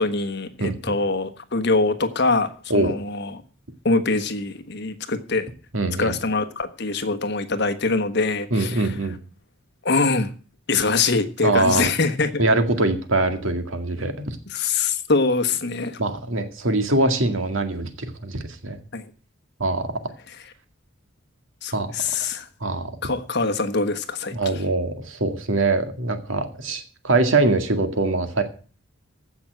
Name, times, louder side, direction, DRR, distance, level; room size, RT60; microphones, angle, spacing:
voice 1, 0.0-3.4 3.8-5.5 6.0-8.9 9.8-10.3 10.7-12.4 14.5-16.0 18.9-19.0 21.6-22.5 23.0-24.5, left 3 dB, 55° left, 10 dB, 1.4 m, -23 dB
voice 2, 0.6-0.9 2.7-2.9 5.7-6.1 8.5-9.1 11.4-11.9 12.4-14.3 16.0-18.8 19.6-19.9 21.7-21.9 22.6-22.9 24.3-28.4, right 2 dB, 70° right, 7 dB, 2.1 m, -23 dB
15.0 x 6.0 x 7.9 m, 0.39 s
head